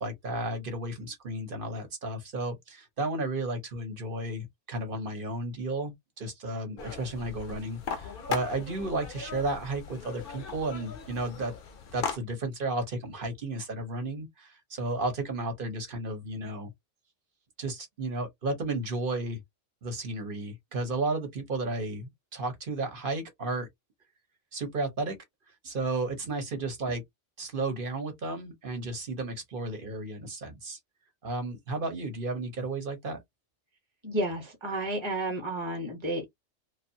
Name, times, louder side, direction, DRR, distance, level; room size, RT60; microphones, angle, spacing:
voice 1, 0.0-11.5 11.9-16.7 17.6-19.4 19.8-23.7 24.5-25.2 25.6-27.0 27.4-30.8 31.2-33.2, right 2 dB, 50° right, 1.1 m, -33 dB
sound 1, 6.8-12.2, left 6 dB, 55° left, 0.7 m, -38 dB
voice 2, 34.0-36.2, right 1 dB, 25° right, 1.0 m, -31 dB
2.6 x 2.4 x 2.6 m
omnidirectional pair, 1.2 m